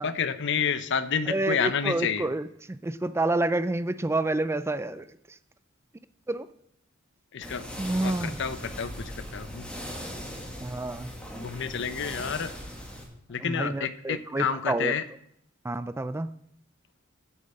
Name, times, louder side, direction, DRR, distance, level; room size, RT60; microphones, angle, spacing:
voice 1, 0.0-2.3 7.3-7.7 8.0-9.7 11.4-12.5 13.3-15.0, left 6 dB, 60° left, 13 dB, 0.7 m, -29 dB
voice 2, 1.3-5.4 6.3-6.5 7.8-8.4 10.6-11.1 13.4-14.9 15.6-16.3, right 2 dB, 15° right, 14 dB, 0.4 m, -29 dB
sound 1, 7.4-13.0, equal, 5° left, 2.0 m, -39 dB
8.8 x 7.9 x 7.6 m, 0.74 s
head